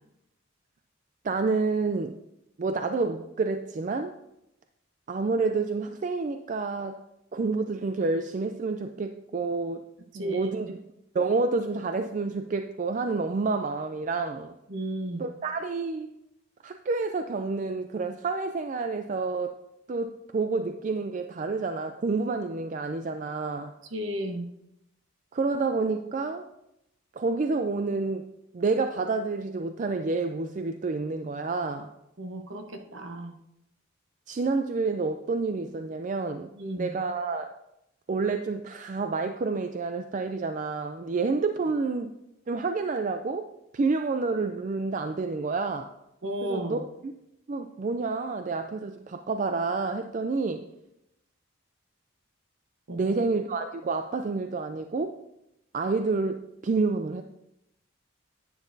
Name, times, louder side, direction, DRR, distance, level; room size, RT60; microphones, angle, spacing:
voice 1, 1.2-2.2 2.6-4.2 5.1-7.0 7.3-9.9 10.1-10.8 11.1-14.5 15.2-16.2 16.6-19.6 19.9-23.7 25.3-26.5 27.1-28.3 28.5-31.9 34.3-36.5 36.8-37.5 38.1-42.1 42.5-45.9 46.4-46.9 47.5-50.7 52.9-55.2 55.7-57.2, right 3 dB, 35° right, 7 dB, 0.3 m, -29 dB
voice 2, 10.1-10.5 14.7-15.2 23.9-24.5 32.2-33.3 36.5-36.9 46.2-46.8 52.9-53.1, right 1 dB, 65° right, 4 dB, 1.0 m, -33 dB
10.5 x 9.2 x 2.7 m, 0.86 s
head